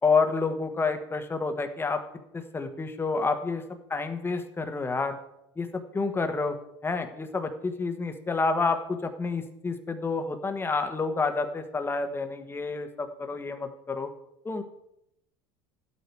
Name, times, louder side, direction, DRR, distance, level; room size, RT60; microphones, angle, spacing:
voice 1, 0.0-2.0 2.3-3.6 3.9-5.2 5.6-6.6 6.8-14.1 14.4-14.6, left 4 dB, 15° left, 7 dB, 1.3 m, -29 dB
11.5 x 8.4 x 4.7 m, 0.81 s
supercardioid pair, 95°, 13 cm